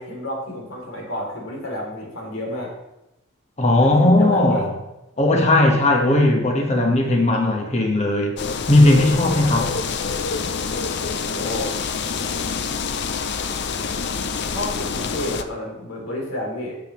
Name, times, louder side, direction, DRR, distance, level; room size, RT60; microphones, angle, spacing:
voice 1, 0.0-2.7 3.8-4.7 6.8-7.3 9.2-9.6 11.0-11.7 14.5-16.8, left 1 dB, 75° left, -2 dB, 3.2 m, -31 dB
voice 2, 3.6-4.7 5.2-8.4 8.7-9.8, left 1 dB, 35° left, 1 dB, 1.5 m, -17 dB
sound 1, 8.4-15.4, left 5 dB, 55° left, 0.6 m, -27 dB
12.5 x 7.3 x 3.2 m, 0.93 s
head